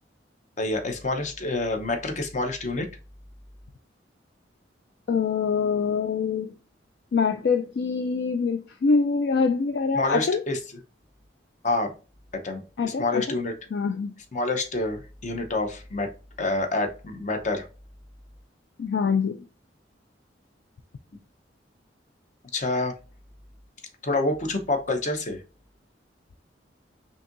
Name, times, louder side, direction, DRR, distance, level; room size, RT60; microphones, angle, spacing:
voice 1, 0.6-2.9 10.0-10.6 11.6-11.9 12.3-13.6 14.3-16.1 16.4-17.7 22.5-22.9 24.0-25.4, left 2 dB, 40° left, 0.7 m, -27 dB
voice 2, 5.1-6.5 7.1-10.4 12.8-13.4 13.7-14.1 18.8-19.4, left 5 dB, 60° left, 0.3 m, -24 dB
5.4 x 2.7 x 2.5 m
head